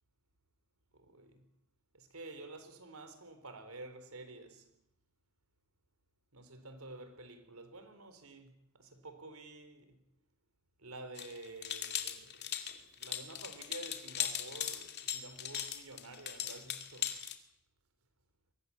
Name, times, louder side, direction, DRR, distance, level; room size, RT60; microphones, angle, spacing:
voice 1, 0.9-1.5 1.9-4.7 6.3-10.0 10.8-12.6 13.0-17.1, right 2 dB, 80° right, 4.1 m, -50 dB
Climbing Gear Jingling, 11.2-17.4, left 9 dB, 50° left, 2.4 m, -39 dB
23.0 x 18.0 x 8.8 m
head